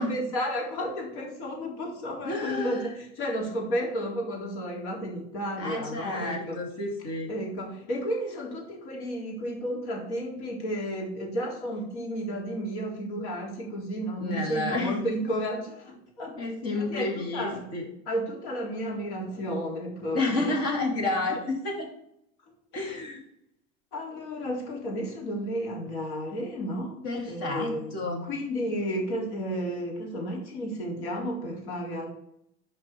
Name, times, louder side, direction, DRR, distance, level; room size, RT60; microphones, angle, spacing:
voice 1, 0.0-6.6 7.3-17.1 17.3-17.6 18.1-20.6 21.3-21.4 22.7-22.9 23.9-27.0 27.3-27.9 28.3-32.1, equal, 85° left, -1 dB, 3.9 m, -32 dB
voice 2, 2.2-2.9 5.6-7.3 14.2-15.1 16.3-17.9 20.1-21.9 22.7-23.2 27.0-28.3, left 2 dB, 40° left, 0 dB, 2.9 m, -30 dB
11.0 x 5.3 x 4.6 m, 0.76 s
cardioid pair, 170°, 35 cm